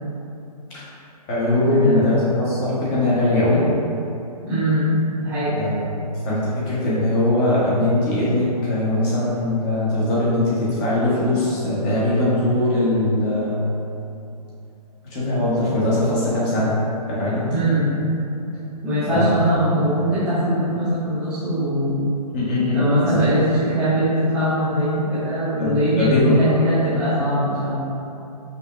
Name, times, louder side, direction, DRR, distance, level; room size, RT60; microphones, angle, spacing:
voice 1, 1.3-3.7 5.5-5.9 6.2-13.6 15.1-16.8 17.1-17.4 19.1-19.4 22.3-23.3 25.6-26.4, left 2 dB, 25° left, -8 dB, 0.8 m, -21 dB
voice 2, 4.5-5.5 17.5-18.0 18.8-22.1 22.7-27.8, right 1 dB, 5° right, -16 dB, 0.3 m, -21 dB
5.1 x 2.1 x 2.3 m, 2.7 s
figure-of-eight pair, 135°, 21 cm